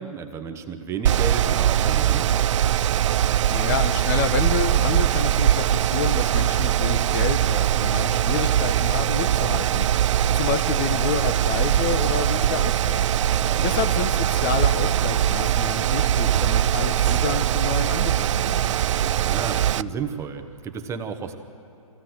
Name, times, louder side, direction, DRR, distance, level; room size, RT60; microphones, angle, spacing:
voice 1, 0.0-2.3 13.3-13.7 19.0-21.4, right 6 dB, 15° right, 6 dB, 1.0 m, -32 dB
Mechanical fan, 1.1-19.8, right 11 dB, 55° right, 0.4 m, -21 dB
voice 2, 3.5-13.1 13.6-18.7, left 7 dB, 35° left, 9 dB, 0.9 m, -29 dB
23.5 x 16.5 x 7.8 m, 2.8 s
hypercardioid pair, 140°, 18 cm